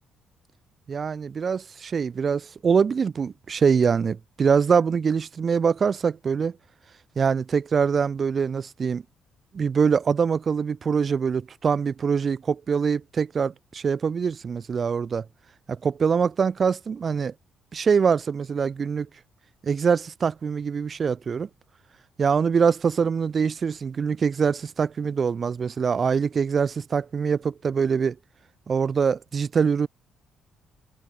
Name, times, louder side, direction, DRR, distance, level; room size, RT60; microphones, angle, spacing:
voice 1, 0.9-6.5 7.2-9.0 9.5-15.2 15.7-17.3 17.7-19.1 19.6-21.5 22.2-28.2 28.7-29.9, right 6 dB, 45° right, 0.4 m, -24 dB
cardioid pair, 80°, 0 cm